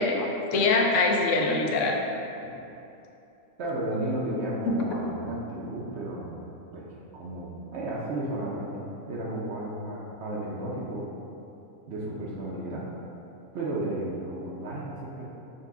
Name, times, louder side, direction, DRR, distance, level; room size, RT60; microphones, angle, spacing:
voice 1, 0.0-2.0 4.7-4.8, left 3 dB, 80° left, 1 dB, 0.9 m, -24 dB
voice 2, 3.6-8.7 9.1-11.1 11.9-12.9 13.5-15.3, right 1 dB, 65° right, -5 dB, 0.9 m, -33 dB
6.5 x 2.2 x 3.5 m, 2.9 s
omnidirectional pair, 1.3 m